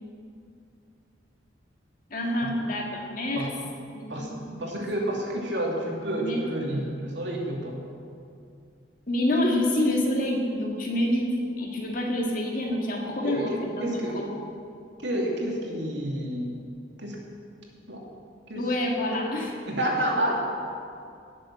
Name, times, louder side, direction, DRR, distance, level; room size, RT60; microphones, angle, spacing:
voice 1, 2.1-3.5 3.9-4.6 6.1-6.8 9.1-14.4 18.5-19.5, left 1 dB, 45° left, 0 dB, 2.3 m, -27 dB
voice 2, 4.1-7.8 13.2-14.2 15.0-16.5 17.0-17.2 17.9-18.0 18.5-18.7 19.1-19.2 19.7-20.3, right 1 dB, 70° right, -1 dB, 2.7 m, -29 dB
18.5 x 7.6 x 7.6 m, 2.4 s
head